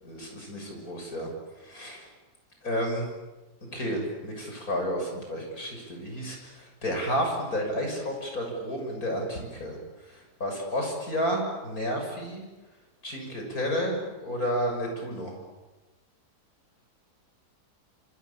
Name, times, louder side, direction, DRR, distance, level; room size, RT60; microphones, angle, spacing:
voice 1, 0.0-1.3 1.6-2.1 2.6-3.1 3.7-9.8 10.4-12.4 13.0-15.3, equal, 60° left, 2 dB, 7.1 m, -31 dB
27.5 x 27.5 x 7.2 m, 1.2 s
omnidirectional pair, 1.8 m